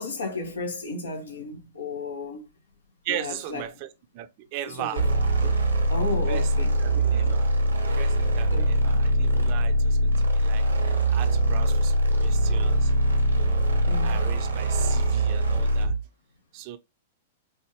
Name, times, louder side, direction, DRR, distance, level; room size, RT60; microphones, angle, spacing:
voice 1, 0.0-2.4 3.1-3.6 4.8-5.0 5.4-5.5 5.9-7.3 8.5-8.9 10.6-10.7 13.9-14.2, left 2 dB, 80° left, 1.2 m, -34 dB
voice 2, 3.0-5.0 6.3-7.5 8.0-12.9 13.3-13.7 14.0-15.9 16.5-16.8, right 13 dB, 45° right, 0.6 m, -38 dB
sound 1, 5.0-16.0, right 1 dB, 90° right, 1.4 m, -22 dB
4.9 x 2.6 x 3.0 m
hypercardioid pair, 110°, 0 cm